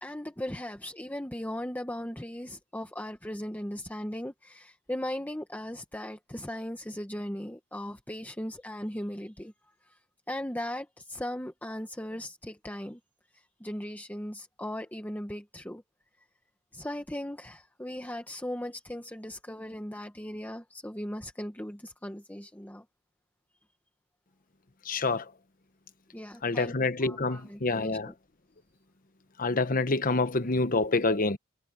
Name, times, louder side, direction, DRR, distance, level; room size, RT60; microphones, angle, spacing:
voice 1, 0.0-9.5 10.3-13.0 13.6-15.8 16.7-22.8 26.1-28.1, left 1 dB, 10° left, 1.3 m, -38 dB
voice 2, 24.9-25.2 26.4-28.1 29.4-31.4, left 3 dB, 45° left, 1.1 m, -27 dB
head